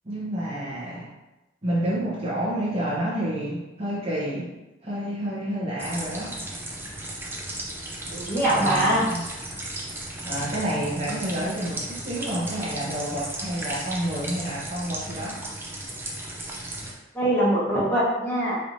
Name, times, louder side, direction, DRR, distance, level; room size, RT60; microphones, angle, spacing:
voice 1, 0.0-1.1 1.6-4.5 4.8-6.3 8.5-9.2 10.2-15.4, right 1 dB, 30° right, -7 dB, 1.0 m, -29 dB
sound 1, 5.8-16.9, right 1 dB, 10° right, 0.6 m, -35 dB
voice 2, 8.1-9.0 17.1-18.6, right 1 dB, 10° left, -9 dB, 1.4 m, -22 dB
4.7 x 3.3 x 2.7 m, 1.0 s
head